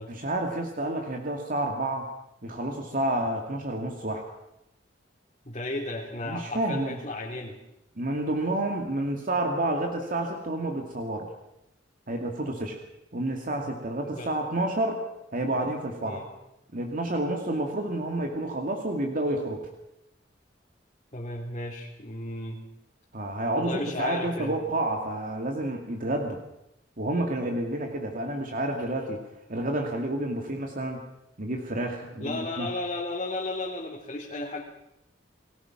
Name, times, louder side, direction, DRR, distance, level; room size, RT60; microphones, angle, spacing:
voice 1, 0.1-2.1 2.4-4.2 6.2-7.0 8.0-11.3 12.1-12.8 13.1-15.0 15.3-16.2 16.7-19.7 23.1-26.4 27.0-29.2 29.5-31.0 31.4-32.7, right 1 dB, 50° right, 2 dB, 2.3 m, -29 dB
voice 2, 5.4-7.6 14.0-14.3 16.0-16.3 21.1-22.6 23.5-24.6 32.2-34.6, left 2 dB, 40° left, -2 dB, 2.8 m, -34 dB
30.0 x 19.5 x 6.1 m, 0.86 s
head